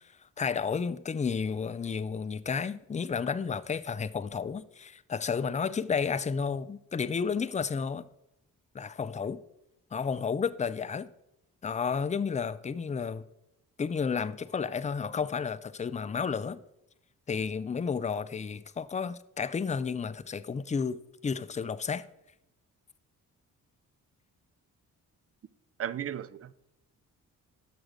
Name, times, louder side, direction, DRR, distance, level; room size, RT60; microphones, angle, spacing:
voice 1, 0.4-8.0 8.7-9.4 9.9-11.1 11.6-13.2 13.8-16.6 17.3-22.1, left 6 dB, 20° left, 0.4 m, -32 dB
voice 2, 25.8-26.5, right 10 dB, 35° right, 0.5 m, -35 dB
6.4 x 5.1 x 6.1 m
supercardioid pair, 45°, 40 cm